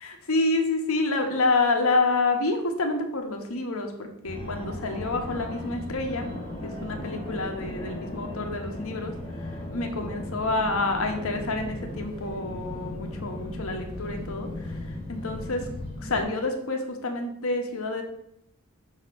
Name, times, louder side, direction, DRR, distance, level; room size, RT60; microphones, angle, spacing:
voice 1, 0.0-6.3 6.6-9.1 9.4-15.7 16.0-18.0, left 3 dB, 70° left, 4 dB, 1.0 m, -28 dB
Fixed-wing aircraft airplane, 4.2-16.2, left 1 dB, 20° left, 2.0 m, -36 dB
5.8 x 4.1 x 5.1 m, 0.74 s
head